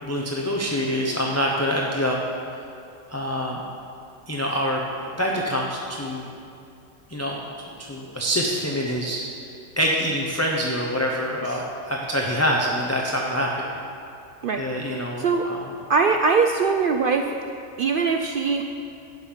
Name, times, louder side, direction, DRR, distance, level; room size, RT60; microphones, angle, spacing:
voice 1, 0.0-2.2 3.1-3.6 4.3-6.3 7.1-7.4 7.8-9.2 9.8-13.5 14.6-15.6, equal, 15° left, -2 dB, 0.7 m, -25 dB
voice 2, 15.9-17.4 17.8-18.6, right 5 dB, 65° right, 5 dB, 0.5 m, -21 dB
11.0 x 5.5 x 7.3 m, 2.7 s
omnidirectional pair, 1.4 m